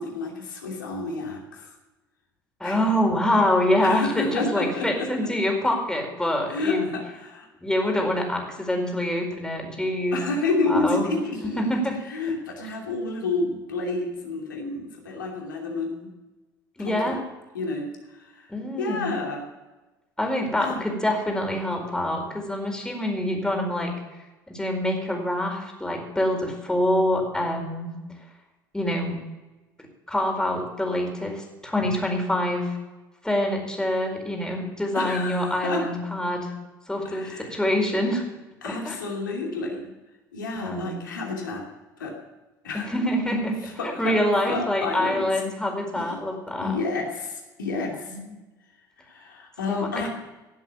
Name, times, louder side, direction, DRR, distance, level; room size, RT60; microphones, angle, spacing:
voice 1, 0.0-1.7 2.6-2.8 3.8-5.1 6.5-7.5 10.1-11.8 12.1-16.1 16.8-17.2 17.5-18.5 18.8-19.4 20.6-20.8 34.9-35.8 37.0-37.6 38.6-39.8 40.3-41.6 42.0-42.1 42.6-42.9 43.8-44.2 44.5-45.3 46.1-46.2 46.6-48.2 49.0-50.1, left 3 dB, 85° left, 0 dB, 2.8 m, -30 dB
voice 2, 2.6-6.9 7.6-10.2 10.7-11.1 11.6-12.0 16.8-17.2 18.5-19.2 20.2-23.9 24.5-27.9 28.7-29.2 30.1-32.7 33.2-36.5 36.9-38.2 38.6-38.9 40.5-41.0 42.7-43.6 43.8-46.8 48.1-48.2 49.7-50.0, left 1 dB, 5° left, 2 dB, 4.7 m, -25 dB
17.5 x 8.1 x 7.0 m, 1.1 s
hypercardioid pair, 65°, 10 cm